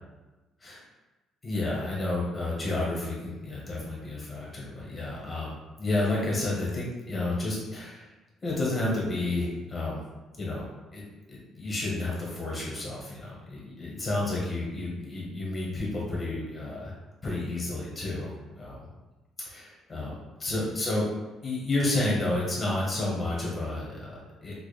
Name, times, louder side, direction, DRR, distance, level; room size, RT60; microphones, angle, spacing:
voice 1, 1.4-8.1 8.4-10.0 10.4-10.7 10.9-17.0 17.2-18.9 19.5-21.1 21.4-24.5, left 2 dB, 20° left, -5 dB, 0.9 m, -31 dB
4.9 x 2.3 x 2.3 m, 1.1 s
cardioid pair, 175°, 0 cm